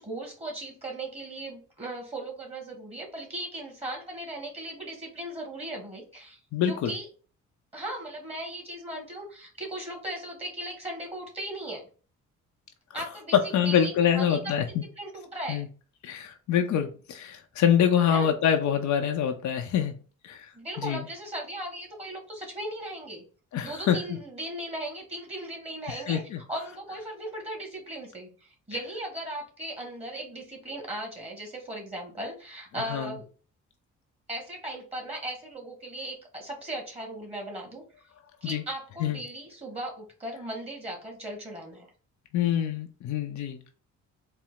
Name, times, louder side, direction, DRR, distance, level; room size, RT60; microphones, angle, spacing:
voice 1, 0.0-7.1 7.7-11.9 12.9-14.4 15.0-15.7 18.1-18.3 20.5-23.2 23.6-26.2 26.5-33.2 34.3-37.8 38.4-41.9, right 1 dB, 20° right, 1 dB, 1.6 m, -37 dB
voice 2, 6.5-6.9 12.9-13.0 13.3-14.8 15.5-15.7 16.0-19.9 20.2-20.5 20.8-21.0 23.5-24.0 25.9-26.4 32.9-33.1 38.4-38.6 39.0-39.2 42.3-43.6, left 9 dB, 70° left, 5 dB, 0.7 m, -25 dB
4.3 x 2.0 x 3.9 m, 0.37 s
cardioid pair, 90°, 30 cm